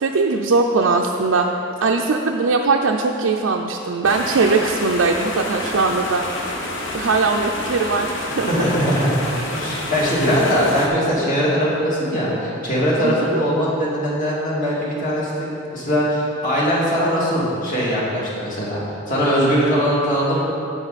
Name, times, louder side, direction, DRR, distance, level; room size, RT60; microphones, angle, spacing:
voice 1, 0.0-1.5 1.8-6.2 6.9-8.5 13.0-13.4, right 4 dB, 75° right, 1 dB, 0.5 m, -20 dB
sound 1, 4.0-10.9, left 1 dB, 65° left, 1.2 m, -29 dB
voice 2, 8.5-9.2 9.5-15.5 15.7-18.8 19.1-20.4, equal, 40° left, -6 dB, 2.3 m, -20 dB
9.8 x 8.3 x 4.1 m, 2.7 s
head